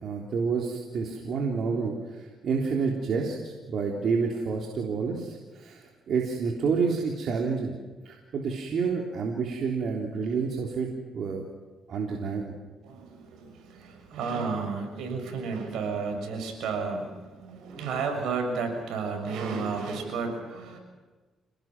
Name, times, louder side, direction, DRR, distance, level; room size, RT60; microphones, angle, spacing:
voice 1, 0.0-7.8 8.1-11.4 11.9-12.4, right 5 dB, 60° right, 0 dB, 3.5 m, -29 dB
voice 2, 12.8-20.8, right 4 dB, 80° right, 4 dB, 6.4 m, -32 dB
28.5 x 19.0 x 6.2 m, 1.3 s
cardioid pair, 90°, 0 cm